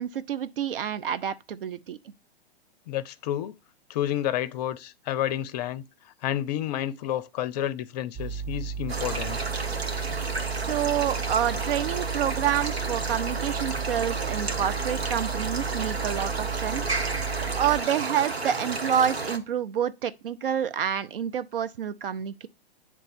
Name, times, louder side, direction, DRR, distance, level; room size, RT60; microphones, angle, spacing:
voice 1, 0.0-2.0 10.5-16.8 17.5-22.5, right 9 dB, 60° right, 0.7 m, -28 dB
voice 2, 2.9-3.6 3.9-5.8 6.2-9.4, left 12 dB, 40° left, 0.6 m, -30 dB
sound 1, 8.1-17.8, right 6 dB, 25° right, 0.8 m, -34 dB
sound 2, 8.9-19.4, right 3 dB, 80° right, 1.3 m, -32 dB
8.8 x 3.3 x 5.1 m
figure-of-eight pair, 110°, 31 cm